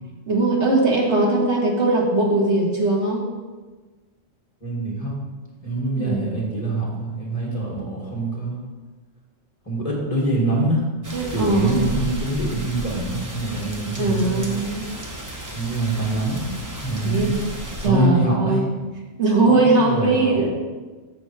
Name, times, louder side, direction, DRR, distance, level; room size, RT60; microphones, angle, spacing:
voice 1, 0.3-3.2 6.0-6.3 11.1-11.9 14.0-14.9 17.0-17.4 17.8-18.7 19.2-20.6, right 2 dB, 75° right, -2 dB, 1.9 m, -20 dB
voice 2, 4.6-5.2 5.6-8.6 9.7-10.8 11.3-14.5 15.5-16.4 16.8-17.4 17.8-18.6 19.4-19.6 19.8-20.4, right 2 dB, 30° left, -4 dB, 2.3 m, -24 dB
sound 1, 11.0-17.9, equal, 20° right, 0.8 m, -34 dB
7.7 x 6.5 x 4.7 m, 1.3 s
omnidirectional pair, 1.2 m